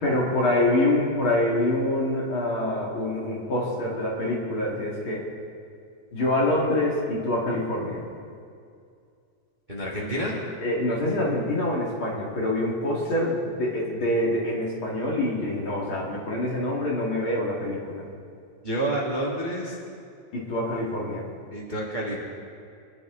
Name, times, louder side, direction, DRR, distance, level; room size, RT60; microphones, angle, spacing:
voice 1, 0.0-5.3 6.1-8.1 10.6-18.1 20.3-21.3, left 1 dB, 45° left, -3 dB, 2.7 m, -25 dB
voice 2, 9.7-10.4 18.6-19.8 21.5-22.2, right 1 dB, 20° right, -4 dB, 1.7 m, -28 dB
25.0 x 10.5 x 3.9 m, 2.4 s
omnidirectional pair, 3.5 m